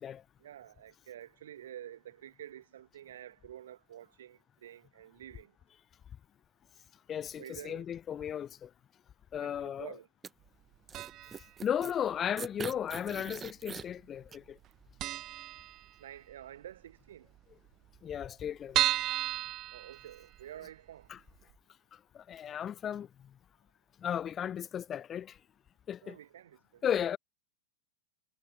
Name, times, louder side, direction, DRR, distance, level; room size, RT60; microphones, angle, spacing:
voice 1, 0.4-5.6 7.3-7.9 9.4-10.1 16.0-17.3 19.1-19.3 19.7-21.1 26.0-27.2, right 11 dB, 60° right, 1.9 m, -49 dB
voice 2, 7.1-8.7 9.3-9.9 11.6-14.6 18.0-18.8 21.1-21.2 21.9-23.1 24.0-25.4 25.9-26.2 26.8-27.2, left 9 dB, 25° left, 0.6 m, -35 dB
sound 1, 10.2-10.3 10.9-11.9 12.4-13.8 14.3-14.4, right 6 dB, 20° right, 1.4 m, -42 dB
sound 2, 10.9-11.5 11.7-11.8 12.8-13.5 13.7-13.9 14.2-14.3 14.6-14.7 15.0-16.3 16.7-16.8 17.1-17.2 17.3-17.4 17.9-20.6 21.0-21.1 21.5-21.6, right 15 dB, 35° right, 0.7 m, -33 dB
figure-of-eight pair, 90°, 0 cm